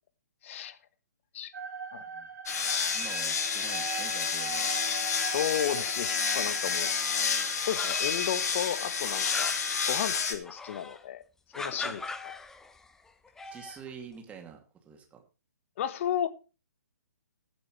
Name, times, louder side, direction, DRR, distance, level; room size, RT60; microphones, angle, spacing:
voice 1, 0.4-0.8 1.3-1.5 1.9-2.0 5.1-6.9 7.7-9.5 9.9-11.2 11.5-12.0 15.8-16.3, left 10 dB, 45° left, 1.2 m, -33 dB
sound 1, 1.5-10.2, right 6 dB, 65° right, 2.6 m, -43 dB
sound 2, 2.5-10.3, left 5 dB, 65° left, 2.5 m, -30 dB
voice 2, 2.9-4.7 6.6-6.7 11.8-11.9 13.5-14.6 14.8-15.2, right 7 dB, 15° right, 2.5 m, -46 dB
sound 3, 7.4-8.4 8.7-11.0 11.5-12.9 13.3-13.9, left 3 dB, 5° left, 0.7 m, -41 dB
20.0 x 7.7 x 3.2 m
hypercardioid pair, 140°, 9 cm